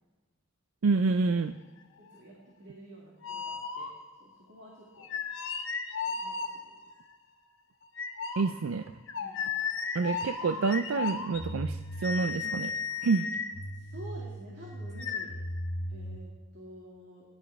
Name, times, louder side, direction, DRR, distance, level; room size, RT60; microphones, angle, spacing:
voice 1, 0.8-1.5 8.4-8.9 9.9-12.7 13.0-13.3, right 4 dB, 90° right, 10 dB, 0.4 m, -28 dB
voice 2, 2.0-3.9 4.2-5.1 6.0-6.8 9.2-9.6 13.7-15.5 15.9-17.2, right 1 dB, 55° right, -3 dB, 2.4 m, -50 dB
sound 1, 3.2-4.2 5.0-6.9 7.9-16.2, left 4 dB, 65° left, 1.3 m, -35 dB
20.0 x 11.0 x 3.5 m, 1.3 s
head